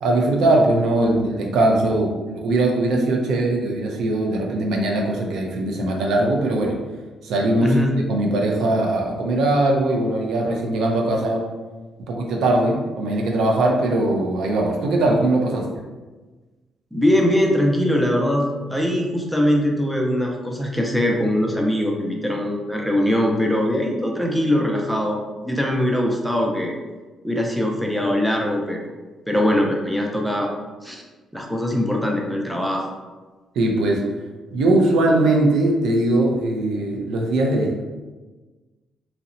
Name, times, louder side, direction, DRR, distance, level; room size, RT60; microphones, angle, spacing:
voice 1, 0.0-6.8 7.2-7.8 8.1-11.5 12.1-15.8 33.5-34.0 34.5-37.8, right 2 dB, 80° right, 0 dB, 0.4 m, -20 dB
voice 2, 7.6-7.9 16.9-25.2 25.4-26.7 27.2-28.9 29.3-30.5 30.8-31.0 31.3-32.9, left 1 dB, ahead, -1 dB, 0.4 m, -21 dB
2.7 x 2.0 x 2.5 m, 1.3 s
cardioid pair, 90°, 0 cm